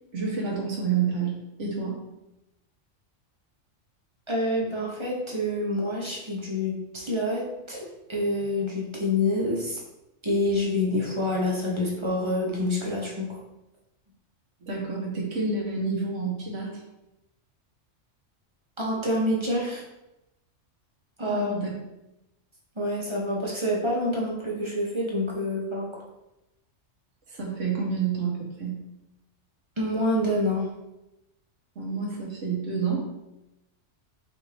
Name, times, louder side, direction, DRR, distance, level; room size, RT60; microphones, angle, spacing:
voice 1, 0.1-2.0 14.6-16.8 21.3-21.7 27.3-28.8 31.7-33.1, right 5 dB, 75° right, -3 dB, 1.4 m, -29 dB
voice 2, 4.3-9.8 10.2-13.4 18.8-19.8 21.2-21.5 22.8-26.0 29.8-30.7, left 1 dB, 30° right, -3 dB, 0.7 m, -27 dB
5.0 x 2.6 x 3.3 m, 0.92 s
omnidirectional pair, 1.3 m